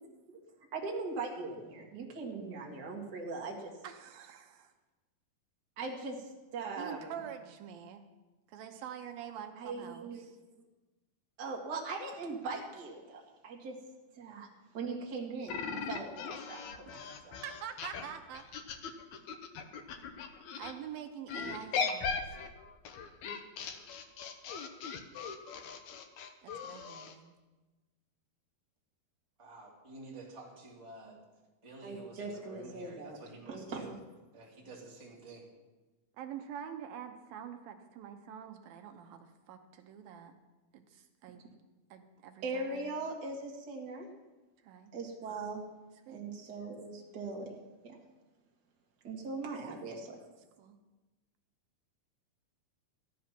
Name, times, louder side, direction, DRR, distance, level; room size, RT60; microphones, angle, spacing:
voice 1, 0.7-3.7 5.8-7.2 9.6-10.3 11.4-13.8 14.2-14.5 14.7-17.4 31.8-33.2 33.5-33.9 42.4-44.1 44.9-45.6 46.1-47.5 47.8-48.0 49.0-50.2, right 3 dB, 35° right, -1 dB, 1.8 m, -40 dB
voice 2, 3.8-4.7 6.8-8.0 8.5-10.4 17.0-18.4 20.5-22.4 26.4-27.3 36.2-40.3 40.7-41.4 41.9-42.8 44.6-44.9 46.1-46.2 50.6-50.8, right 9 dB, 75° right, 6 dB, 2.5 m, -46 dB
sound 1, 15.5-20.7 21.3-27.1, left 5 dB, 75° left, 1.7 m, -39 dB
voice 3, 29.4-31.2 31.6-33.9 34.3-35.5, right 2 dB, 10° right, -4 dB, 2.1 m, -50 dB
14.0 x 10.5 x 5.9 m, 1.2 s
omnidirectional pair, 4.5 m